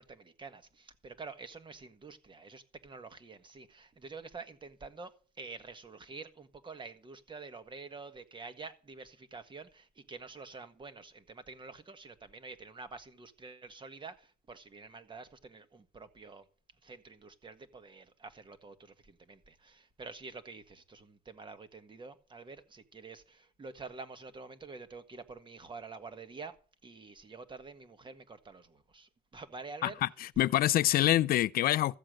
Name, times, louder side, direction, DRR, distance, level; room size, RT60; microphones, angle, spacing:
voice 1, 0.0-16.4 16.8-26.5 26.8-30.0, right 4 dB, 30° right, 1.5 m, -48 dB
voice 2, 29.8-32.0, left 14 dB, 60° left, 0.5 m, -26 dB
14.0 x 7.6 x 6.4 m
cardioid pair, 110°, 17 cm